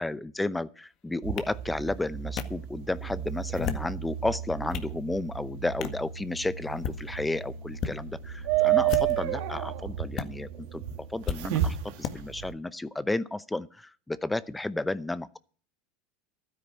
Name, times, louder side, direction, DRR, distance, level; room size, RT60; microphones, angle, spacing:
voice 1, 0.0-15.4, left 2 dB, 10° left, 0.7 m, -32 dB
sound 1, 1.2-12.5, right 12 dB, 70° right, 2.3 m, -32 dB
sound 2, 1.4-1.5 2.4-2.5 3.4-3.9 4.4-4.9 5.8-6.0 6.7-7.0 7.7-8.0 8.8-9.3 10.2-10.3 11.3-11.4 12.0-12.1, left 8 dB, 50° left, 1.7 m, -33 dB
12.5 x 9.7 x 7.3 m
supercardioid pair, 115°, 0 cm